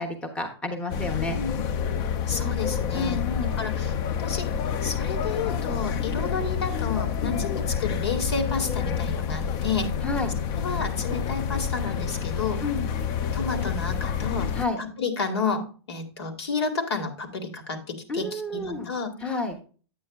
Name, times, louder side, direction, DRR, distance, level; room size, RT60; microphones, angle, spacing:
voice 1, 0.0-1.4 2.9-3.6 7.2-7.5 10.0-10.4 12.6-12.9 14.5-14.8 18.1-18.9 19.2-19.6, left 3 dB, 10° left, 3 dB, 1.1 m, -30 dB
sound 1, 0.9-14.6, left 7 dB, 25° left, 0.5 m, -28 dB
voice 2, 2.3-3.2 3.6-4.5 4.8-9.9 10.6-12.6 13.3-14.5 14.8-19.1, left 4 dB, 75° left, 4 dB, 2.0 m, -31 dB
8.9 x 8.8 x 2.4 m, 0.38 s
hypercardioid pair, 150°, 14 cm